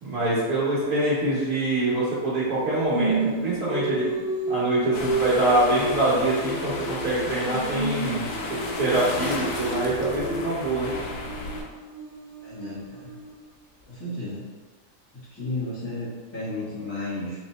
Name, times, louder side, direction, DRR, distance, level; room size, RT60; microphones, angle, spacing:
voice 1, 0.0-4.0 4.5-10.9, right 2 dB, 65° right, -10 dB, 1.6 m, -25 dB
Singing, 2.9-7.2 7.5-13.5, right 2 dB, 40° right, 1.3 m, -31 dB
sound 1, 4.9-11.6, left 3 dB, 85° left, 1.3 m, -33 dB
voice 2, 12.4-13.1 13.9-14.4 15.1-17.4, left 2 dB, 10° left, -16 dB, 1.1 m, -33 dB
3.9 x 2.6 x 4.1 m, 1.4 s
omnidirectional pair, 1.8 m